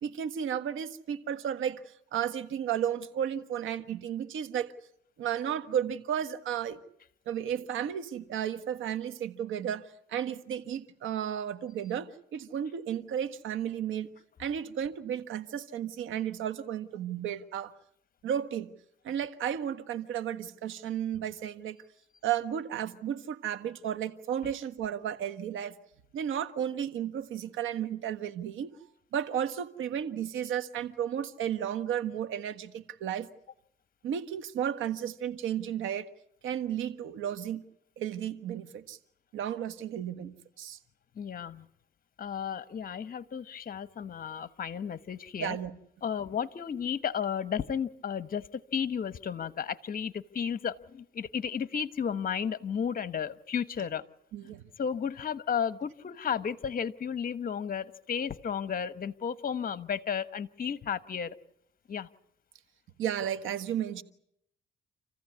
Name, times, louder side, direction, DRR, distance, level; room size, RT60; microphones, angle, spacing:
voice 1, 0.0-4.7 5.2-6.8 7.3-14.1 14.4-17.7 18.2-18.7 19.0-21.8 22.2-25.7 26.1-28.7 29.1-33.3 34.0-36.1 36.4-37.6 38.0-39.0 39.3-40.8 45.4-45.7 54.3-54.6 63.0-64.0, right 9 dB, 80° right, 11 dB, 1.5 m, -33 dB
voice 2, 41.2-41.7 42.2-45.5 46.0-54.0 54.8-61.3 61.9-62.1, left 7 dB, 45° left, 14 dB, 1.2 m, -33 dB
28.0 x 15.0 x 9.6 m, 0.74 s
cardioid pair, 90°, 20 cm